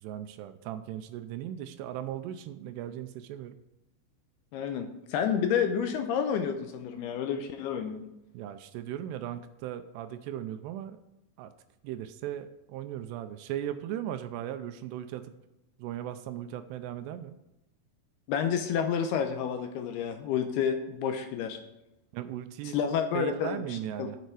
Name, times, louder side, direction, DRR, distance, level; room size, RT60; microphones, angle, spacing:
voice 1, 0.0-3.6 8.3-11.0 11.4-11.5 11.8-15.3 15.8-17.4 22.1-22.8 23.1-24.2, right 11 dB, 80° right, 10 dB, 2.6 m, -37 dB
voice 2, 4.5-8.1 18.3-21.6 22.7-24.1, left 7 dB, 80° left, 6 dB, 2.5 m, -30 dB
11.0 x 8.0 x 4.8 m, 0.92 s
omnidirectional pair, 5.1 m